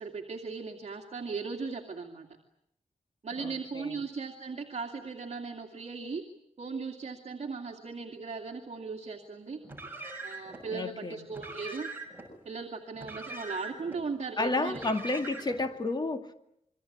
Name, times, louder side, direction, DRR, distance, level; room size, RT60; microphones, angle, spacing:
voice 1, 0.0-2.3 3.2-6.2 6.6-9.6 10.2-11.9 12.4-14.8 15.2-15.3, right 4 dB, 55° right, 2.5 m, -38 dB
voice 2, 3.4-4.0 10.7-11.2 14.4-16.3, left 2 dB, 30° left, 2.3 m, -31 dB
Car, 9.6-10.6 11.3-12.3 12.9-14.0 14.7-15.6, right 2 dB, 15° right, 6.7 m, -42 dB
27.5 x 23.5 x 8.7 m
wide cardioid pair, 155°, 14 cm